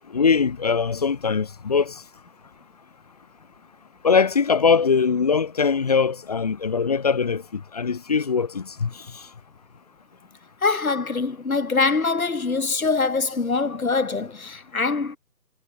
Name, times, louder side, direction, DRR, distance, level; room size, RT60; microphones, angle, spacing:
voice 1, 0.1-2.0 4.0-8.9, left 5 dB, 25° left, 2.4 m, -21 dB
voice 2, 10.6-15.2, left 4 dB, 55° left, 6.6 m, -23 dB
figure-of-eight pair, 175°, 48 cm